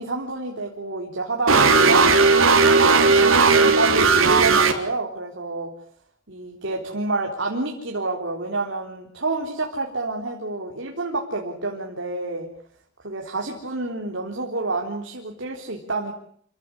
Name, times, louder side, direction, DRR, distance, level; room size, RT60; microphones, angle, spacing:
voice 1, 0.0-2.1 2.4-5.7 6.3-12.5 13.0-16.1, right 3 dB, 65° right, 1 dB, 3.9 m, -28 dB
sound 1, 1.5-4.7, right 4 dB, 90° right, 3.6 m, -16 dB
28.5 x 16.5 x 9.8 m, 0.64 s
head